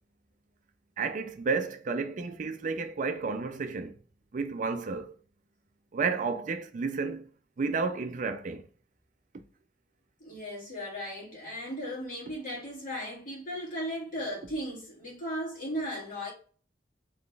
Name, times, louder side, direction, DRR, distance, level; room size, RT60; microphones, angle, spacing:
voice 1, 1.0-4.0 4.3-5.1 5.9-7.3 7.6-8.7, right 4 dB, 45° right, 0.4 m, -31 dB
voice 2, 10.2-16.3, equal, 45° left, 2.1 m, -36 dB
4.1 x 3.2 x 3.3 m
head